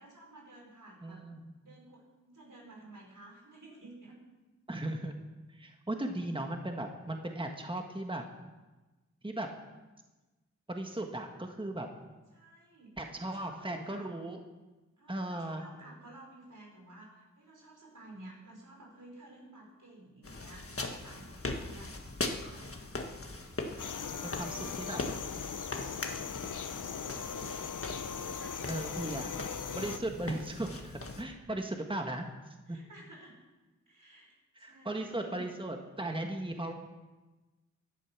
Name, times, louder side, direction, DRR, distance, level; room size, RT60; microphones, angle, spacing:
voice 1, 0.0-1.2 1.6-4.2 12.3-14.1 15.0-21.9 22.4-22.9 23.7-25.1 25.5-26.3 27.0-27.5 28.0-29.1 32.7-33.4 33.9-34.3 34.6-35.5, right 1 dB, 85° right, -1 dB, 5.1 m, -53 dB
voice 2, 1.0-1.5 4.7-5.1 5.5-8.2 9.2-9.5 10.7-11.9 13.0-14.4 15.1-15.6 24.2-25.0 28.7-29.3 29.7-32.2 32.7-32.8 34.6-36.7, right 1 dB, 15° right, 3 dB, 1.5 m, -37 dB
sound 1, 20.2-31.2, left 2 dB, 45° left, 1.5 m, -41 dB
sound 2, 23.8-30.0, left 6 dB, 85° left, 0.7 m, -39 dB
17.0 x 11.0 x 6.0 m, 1.2 s
wide cardioid pair, 60°, 30 cm